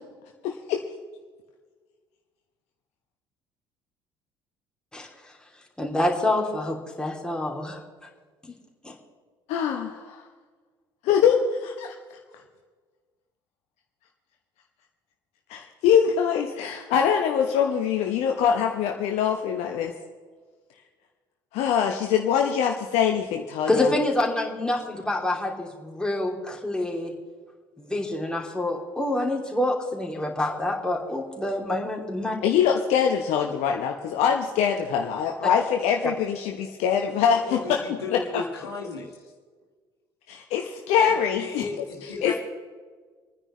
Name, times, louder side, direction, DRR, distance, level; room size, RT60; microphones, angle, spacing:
voice 1, 0.4-0.8 9.5-10.3 11.0-11.9 15.5-19.9 21.5-23.9 32.4-37.8 38.1-38.4 40.3-41.6 42.2-42.4, left 8 dB, 60° left, 3 dB, 0.9 m, -23 dB
voice 2, 5.8-7.8 8.4-8.5 8.8-9.0 23.7-27.1 27.8-32.4, left 1 dB, 5° left, -1 dB, 2.9 m, -27 dB
voice 3, 37.4-39.2 40.9-42.4, left 3 dB, 90° left, -1 dB, 1.7 m, -35 dB
28.5 x 9.8 x 3.2 m, 1.5 s
figure-of-eight pair, 55°, 12 cm